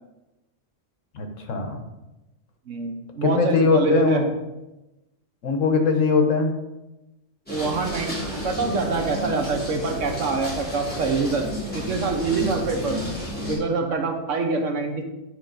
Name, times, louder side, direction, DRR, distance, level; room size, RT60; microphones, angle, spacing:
voice 1, 1.1-1.8 3.2-4.3 5.4-6.5, left 4 dB, 80° left, 5 dB, 1.3 m, -21 dB
voice 2, 2.7-4.2 7.5-8.2 8.4-11.4 11.7-13.0 13.5-15.0, right 3 dB, 75° right, 4 dB, 1.3 m, -25 dB
sound 1, 7.5-13.6, equal, 5° left, 3.0 m, -32 dB
9.0 x 5.0 x 3.9 m, 0.99 s
omnidirectional pair, 1.3 m